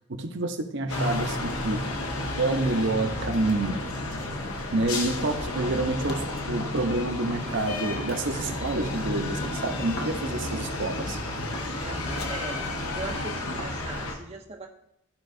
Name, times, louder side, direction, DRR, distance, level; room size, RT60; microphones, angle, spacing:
voice 1, 0.1-1.8 2.4-3.8 4.7-11.2, right 2 dB, 55° right, 5 dB, 0.8 m, -28 dB
sound 1, 0.9-14.2, left 2 dB, 85° left, 1.1 m, -32 dB
voice 2, 4.7-5.1 10.2-10.4 11.8-14.7, right 3 dB, 30° right, 0 dB, 0.6 m, -40 dB
Tap, 5.5-9.1 9.4-13.8, equal, 50° left, 1.1 m, -40 dB
14.0 x 5.3 x 2.7 m, 0.78 s
head